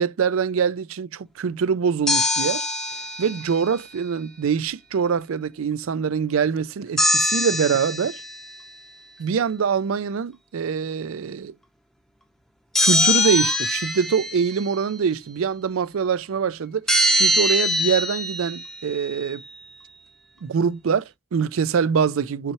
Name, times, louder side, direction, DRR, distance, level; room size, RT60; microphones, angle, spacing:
voice 1, 0.0-2.7 3.2-8.2 9.2-11.5 12.8-16.9 17.1-19.4 20.4-22.5, right 6 dB, 75° right, 0.4 m, -24 dB
sound 1, 2.1-3.8 7.0-8.4 12.8-14.7 16.9-19.1, left 1 dB, ahead, 0.6 m, -23 dB
5.8 x 5.6 x 2.9 m
head